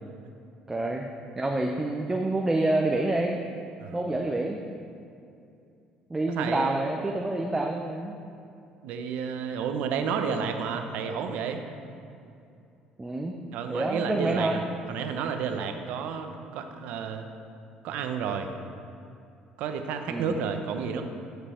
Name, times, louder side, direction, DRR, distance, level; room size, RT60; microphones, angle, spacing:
voice 1, 0.7-1.1 1.4-3.4 3.9-4.6 6.1-8.2 13.0-13.3 13.7-14.6 20.1-20.4, right 2 dB, 15° right, 1 dB, 0.6 m, -27 dB
voice 2, 6.3-6.8 8.8-11.6 13.5-14.6 14.9-17.3 17.8-18.5 19.6-21.0, right 6 dB, 75° right, 6 dB, 0.7 m, -31 dB
12.0 x 5.2 x 4.3 m, 2.6 s
cardioid pair, 95°, 2 cm